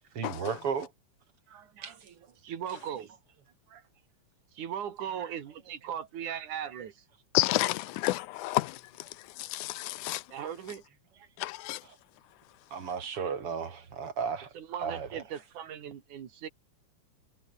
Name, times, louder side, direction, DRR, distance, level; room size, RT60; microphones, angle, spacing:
voice 1, 0.1-0.9 1.8-1.9 6.7-6.8 11.8-11.9 12.7-14.5 14.8-15.2, right 6 dB, 45° right, 3.2 m, -34 dB
voice 2, 1.5-2.2 2.4-3.2 3.7-3.8 4.5-7.0 10.3-10.8 11.1-11.3 12.8-13.3 14.5-16.5, right 9 dB, 75° right, 3.4 m, -39 dB
voice 3, 7.3-10.2 11.4-11.8, left 17 dB, 80° left, 2.1 m, -30 dB
omnidirectional pair, 3.6 m